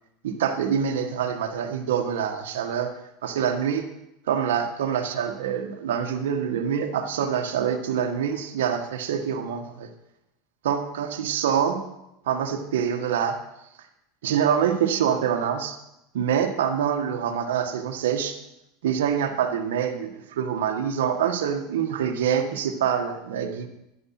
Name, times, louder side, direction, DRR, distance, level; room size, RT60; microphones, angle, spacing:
voice 1, 0.2-3.8 4.3-9.9 10.6-11.8 12.3-13.4 14.2-15.8 16.1-18.4 18.8-23.7, right 8 dB, 85° right, 5 dB, 1.8 m, -25 dB
12.5 x 11.0 x 6.1 m, 0.87 s
supercardioid pair, 120°, 0 cm